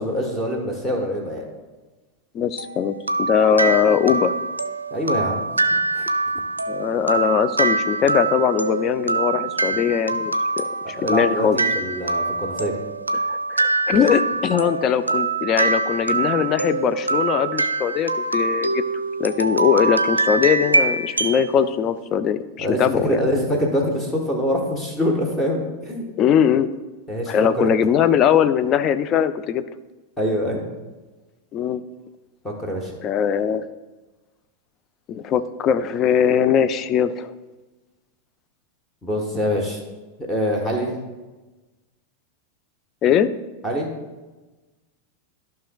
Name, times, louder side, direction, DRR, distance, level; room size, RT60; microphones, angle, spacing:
voice 1, 0.0-1.4 4.9-5.4 5.7-6.1 11.0-12.7 22.6-26.0 27.1-27.7 30.2-30.6 32.4-32.9 39.0-39.8 40.3-40.9 43.6-43.9, equal, 10° left, 0 dB, 1.2 m, -24 dB
voice 2, 2.3-4.3 6.7-11.6 13.3-18.8 19.2-23.2 26.2-26.7 27.3-29.6 31.5-31.8 33.0-33.7 35.1-37.3 43.0-43.3, left 8 dB, 35° left, 11 dB, 0.4 m, -20 dB
sound 1, 2.6-21.5, right 3 dB, 80° right, 0.4 m, -24 dB
13.0 x 5.8 x 2.3 m, 1.2 s
figure-of-eight pair, 90°, 0 cm